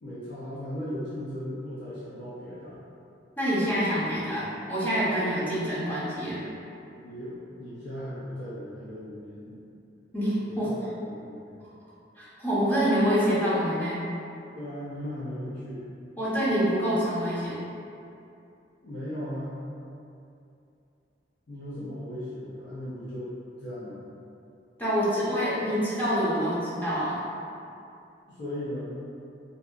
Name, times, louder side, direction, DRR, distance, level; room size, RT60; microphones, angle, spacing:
voice 1, 0.0-2.8 6.9-9.6 10.4-11.6 14.6-15.9 18.8-19.5 21.5-23.3 23.6-24.0 28.3-29.0, equal, 65° left, -9 dB, 0.5 m, -37 dB
voice 2, 3.4-6.4 10.1-10.7 12.2-14.0 16.2-17.6 24.8-27.2, equal, 10° left, -11 dB, 0.6 m, -26 dB
2.7 x 2.4 x 2.2 m, 2.6 s
head